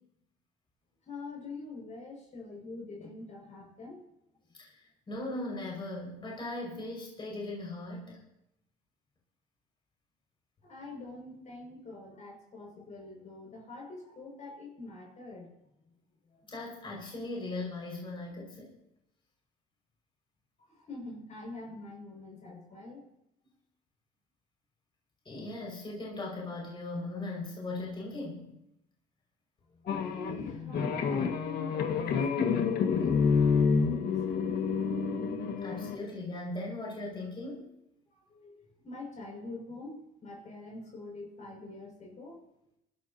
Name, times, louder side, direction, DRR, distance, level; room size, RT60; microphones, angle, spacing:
voice 1, 1.0-4.0 10.6-15.5 16.3-16.4 20.6-23.1 29.7-34.7 38.1-42.4, left 2 dB, 45° left, 0 dB, 6.1 m, -45 dB
voice 2, 5.1-8.2 16.5-18.7 25.2-28.5 35.6-37.6, left 2 dB, 30° left, -2 dB, 5.6 m, -38 dB
sound 1, 29.9-36.0, left 5 dB, 65° left, 1.8 m, -28 dB
25.0 x 13.5 x 2.9 m, 0.82 s
cardioid pair, 110°, 17 cm